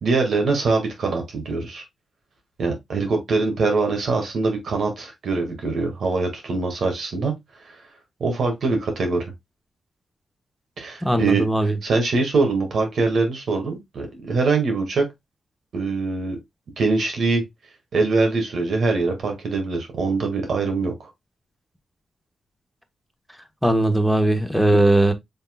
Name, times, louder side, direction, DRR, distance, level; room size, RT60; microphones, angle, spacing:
voice 1, 0.0-1.8 2.6-7.3 8.2-9.2 10.8-11.4 11.8-15.1 15.7-16.4 16.8-17.4 17.9-21.1, right 3 dB, 70° right, 1.9 m, -23 dB
voice 2, 11.0-11.7 23.6-25.1, right 1 dB, ahead, 1.2 m, -19 dB
5.5 x 3.6 x 2.3 m
cardioid pair, 65°, 0 cm